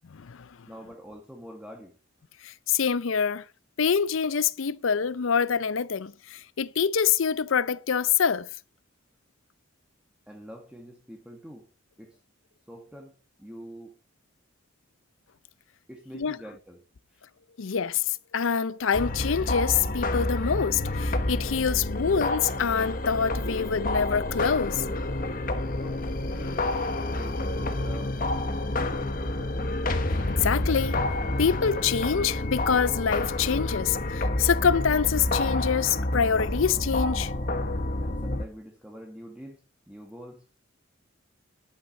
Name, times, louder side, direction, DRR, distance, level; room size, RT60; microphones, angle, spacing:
voice 1, 0.7-2.0 10.3-11.7 12.0-12.2 12.7-14.0 15.9-16.8 17.1-17.2 25.8-26.7 27.1-29.7 38.0-40.5, equal, 5° right, 1.3 m, -46 dB
voice 2, 2.4-3.4 3.8-8.5 16.1-16.4 17.6-24.8 30.3-31.0 31.4-37.3, left 6 dB, 70° left, 0.5 m, -26 dB
sound 1, 18.9-38.4, left 2 dB, 40° left, 1.1 m, -29 dB
11.5 x 9.0 x 5.2 m
head